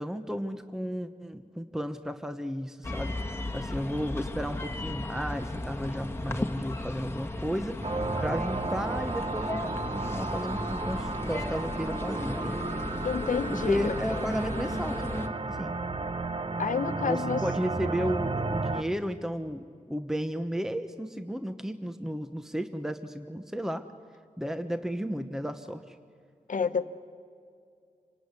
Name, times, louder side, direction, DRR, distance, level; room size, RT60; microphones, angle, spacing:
voice 1, 0.0-3.2 3.5-7.8 8.2-12.6 13.5-15.7 17.0-23.8 24.4-26.0, equal, 5° right, 8 dB, 1.0 m, -33 dB
sound 1, 2.8-15.3, left 2 dB, 20° left, 1.6 m, -35 dB
sound 2, 7.8-18.8, right 3 dB, 40° right, 1.1 m, -33 dB
voice 2, 13.0-14.0 16.6-17.4 26.5-26.9, left 6 dB, 80° left, 10 dB, 1.2 m, -29 dB
27.0 x 18.5 x 9.7 m, 2.4 s
wide cardioid pair, 80°, 13 cm